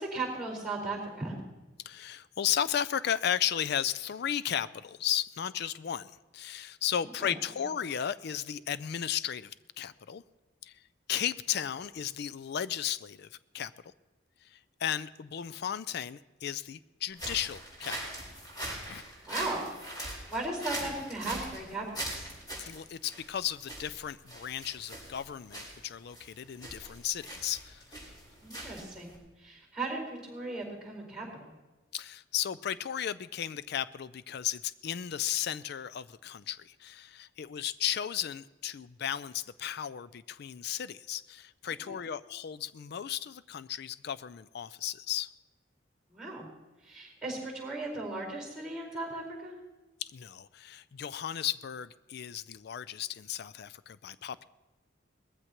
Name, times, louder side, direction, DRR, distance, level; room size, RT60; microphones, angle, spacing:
voice 1, 0.0-1.4 7.2-7.3 19.2-19.7 19.9-22.3 28.4-31.5 41.9-42.0 46.1-46.5 46.8-49.5, right 2 dB, 5° right, -1 dB, 4.6 m, -37 dB
voice 2, 1.9-10.2 10.6-10.8 11.1-13.7 14.4-18.0 18.9-19.0 22.6-27.8 31.9-45.3 50.0-54.4, left 9 dB, 55° left, 15 dB, 0.4 m, -35 dB
sound 1, 17.1-29.2, right 1 dB, 20° left, 4.3 m, -41 dB
20.5 x 14.5 x 3.0 m, 1.1 s
head